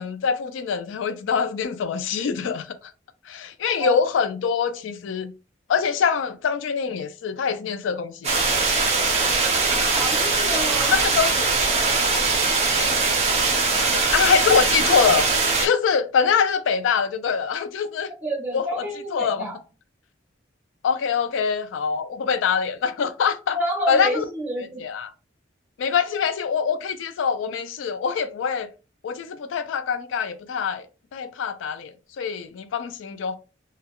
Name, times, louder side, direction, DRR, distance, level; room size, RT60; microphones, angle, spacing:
voice 1, 0.0-2.8 3.3-5.3 5.7-8.4 10.9-11.5 13.9-15.3 15.6-18.1 18.5-18.8 19.1-19.5 20.8-23.6 23.9-24.2 24.8-25.1 25.8-28.7 29.0-30.9 31.1-33.3, left 6 dB, 85° left, 0.3 m, -24 dB
sound 1, 8.2-15.7, right 3 dB, 35° right, 0.6 m, -21 dB
voice 2, 9.9-10.9 18.2-19.6 23.5-24.8, right 1 dB, 10° right, 1.1 m, -29 dB
3.5 x 2.3 x 2.2 m
head